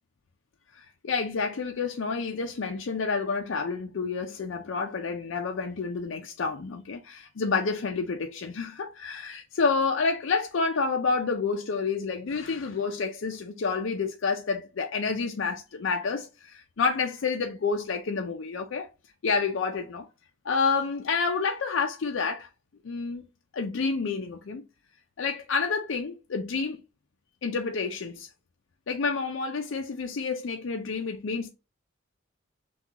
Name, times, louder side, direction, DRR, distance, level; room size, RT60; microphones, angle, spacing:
voice 1, 0.7-18.9 19.2-20.1 20.4-22.5 22.8-23.2 23.5-24.6 25.2-26.8 27.4-28.3 28.9-31.5, left 4 dB, 75° left, 0.5 m, -29 dB
5.9 x 2.3 x 2.8 m
head